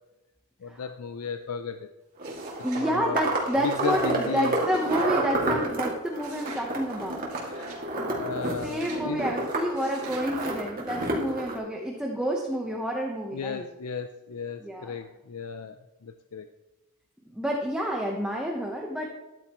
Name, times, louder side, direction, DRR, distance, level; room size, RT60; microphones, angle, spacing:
voice 1, 0.6-1.9 2.9-3.2 3.6-4.6 7.4-7.7 8.0-9.2 13.3-16.5, left 6 dB, 85° left, 8 dB, 0.5 m, -35 dB
sound 1, 2.2-11.6, right 2 dB, 40° right, 2.3 m, -30 dB
sound 2, 2.2-2.9 3.4-5.1 6.2-6.7 7.3-7.8 8.6-9.1 9.7-10.3, right 5 dB, 75° right, 3.2 m, -47 dB
voice 2, 2.6-7.3 8.0-8.3 8.6-13.7 14.6-14.9 17.3-19.1, equal, 5° right, -1 dB, 1.0 m, -29 dB
13.0 x 10.5 x 3.0 m, 1.1 s
head